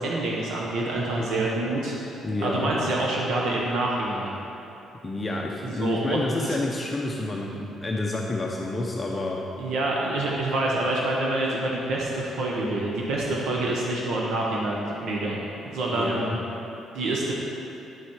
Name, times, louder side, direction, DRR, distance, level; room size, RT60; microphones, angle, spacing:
voice 1, 0.0-2.0 2.4-4.4 5.6-6.6 9.6-16.2 16.9-17.3, right 2 dB, 70° right, -3 dB, 1.3 m, -27 dB
voice 2, 2.2-2.7 5.0-9.4 15.9-16.4, left 2 dB, 20° left, -2 dB, 0.7 m, -29 dB
10.0 x 7.4 x 4.8 m, 2.9 s
cardioid pair, 150°, 0 cm